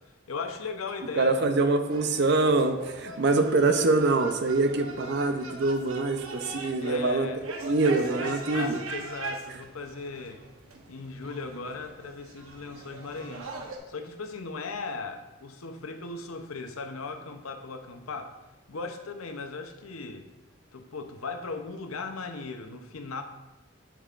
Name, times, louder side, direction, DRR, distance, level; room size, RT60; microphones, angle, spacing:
voice 1, 0.3-1.4 6.8-7.4 8.2-10.4 10.9-13.5 13.9-18.3 18.7-20.3 20.7-23.2, left 4 dB, 85° left, 6 dB, 0.7 m, -37 dB
voice 2, 1.1-7.3 7.6-8.8, right 3 dB, 55° right, 7 dB, 0.6 m, -24 dB
sound 1, 1.9-13.8, right 3 dB, 80° right, 0.9 m, -41 dB
7.2 x 7.1 x 2.5 m, 1.0 s
head